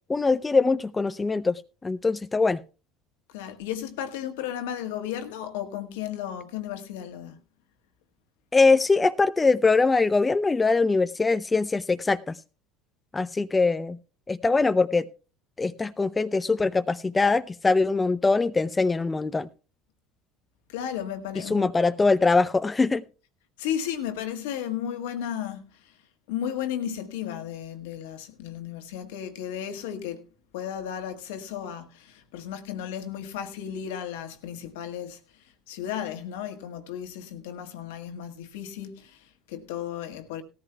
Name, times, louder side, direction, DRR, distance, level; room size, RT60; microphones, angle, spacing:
voice 1, 0.1-2.6 8.5-12.4 13.1-14.0 14.3-15.1 15.6-19.5 21.5-23.0, left 3 dB, 20° left, 0.5 m, -22 dB
voice 2, 3.3-7.4 20.7-21.7 23.6-26.0 26.3-30.2 30.5-40.4, left 9 dB, 75° left, 1.6 m, -34 dB
17.5 x 14.0 x 2.2 m
hypercardioid pair, 75°, 0 cm